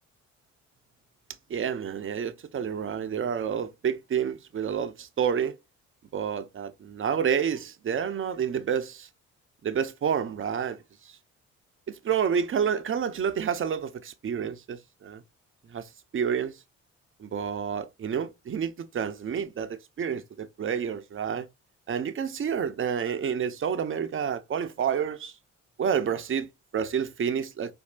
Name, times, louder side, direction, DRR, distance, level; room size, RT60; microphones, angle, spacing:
voice 1, 1.5-5.5 6.1-9.1 9.6-11.2 11.9-15.2 15.7-16.6 17.2-21.5 21.9-25.3 25.8-27.7, right 7 dB, 35° right, 0.7 m, -29 dB
4.4 x 2.6 x 2.4 m
hypercardioid pair, 45°, 36 cm